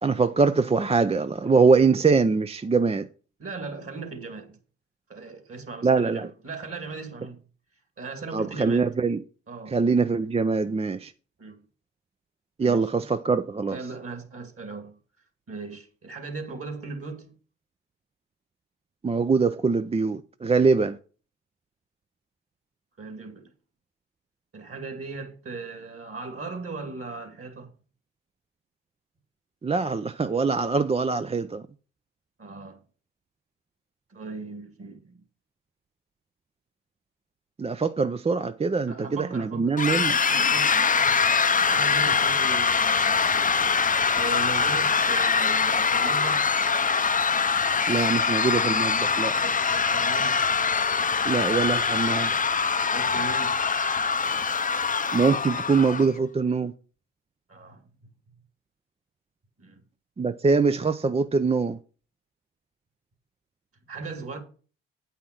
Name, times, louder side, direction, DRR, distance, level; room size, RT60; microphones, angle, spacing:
voice 1, 0.0-3.1 5.8-6.3 8.3-9.2 9.7-11.1 12.6-13.8 19.0-21.0 29.6-31.6 37.6-40.2 47.9-49.3 51.2-52.3 55.1-56.7 60.2-61.8, right 4 dB, 20° right, 0.5 m, -23 dB
voice 2, 3.4-4.6 5.1-7.4 8.0-8.9 9.5-9.8 11.4-11.6 12.6-13.1 13.7-15.0 15.5-17.3 23.0-23.5 24.5-27.7 32.4-32.8 34.1-35.2 38.9-43.5 44.2-46.5 49.4-50.4 52.9-53.6 57.5-58.1 59.6-59.8 63.9-64.4, right 4 dB, 40° right, 2.4 m, -38 dB
sound 1, 39.8-56.1, left 5 dB, 25° left, 0.6 m, -23 dB
8.5 x 5.7 x 6.1 m
supercardioid pair, 60°, 33 cm